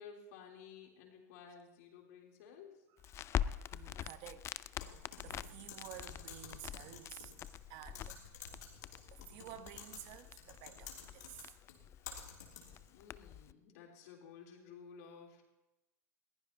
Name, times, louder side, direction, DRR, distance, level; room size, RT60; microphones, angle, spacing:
voice 1, 0.0-2.8 12.9-15.4, left 6 dB, 65° left, 3.6 m, -54 dB
Crackle, 3.0-13.5, left 10 dB, 30° left, 0.4 m, -44 dB
voice 2, 3.1-4.5 4.8-7.3 7.7-8.2 8.5-8.6 9.1-11.5, right 12 dB, 50° right, 1.1 m, -52 dB
Typing, 4.8-12.9, left 6 dB, 80° left, 3.1 m, -52 dB
21.0 x 15.5 x 2.9 m
hypercardioid pair, 110°, 9 cm